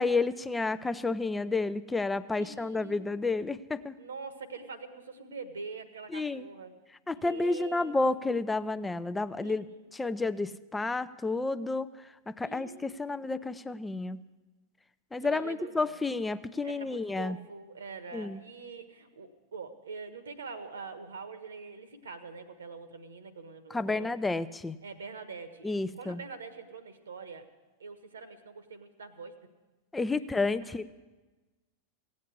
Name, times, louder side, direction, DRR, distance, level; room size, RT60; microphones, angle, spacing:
voice 1, 0.0-4.0 6.1-6.5 7.1-9.6 9.9-11.9 12.3-14.2 15.1-17.4 18.1-18.4 23.7-24.8 25.6-26.2 29.9-30.9, left 3 dB, 10° left, 14 dB, 0.5 m, -30 dB
voice 2, 2.4-3.5 4.0-6.7 7.2-8.2 9.4-9.7 12.4-13.3 15.2-16.0 16.6-24.1 24.8-25.7 25.9-27.5 27.8-29.3 30.2-30.7, right 4 dB, 70° right, 11 dB, 1.3 m, -44 dB
16.5 x 8.5 x 8.2 m, 1.2 s
figure-of-eight pair, 90°, 0 cm